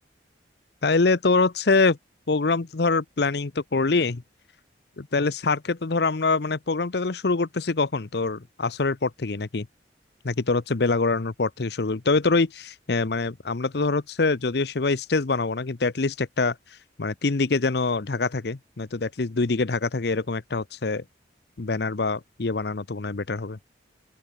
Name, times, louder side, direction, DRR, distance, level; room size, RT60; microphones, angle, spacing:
voice 1, 0.8-2.0 2.3-4.2 5.0-9.7 10.2-16.6 17.0-21.0 21.6-23.6, left 3 dB, 60° left, 0.8 m, -24 dB
open air
head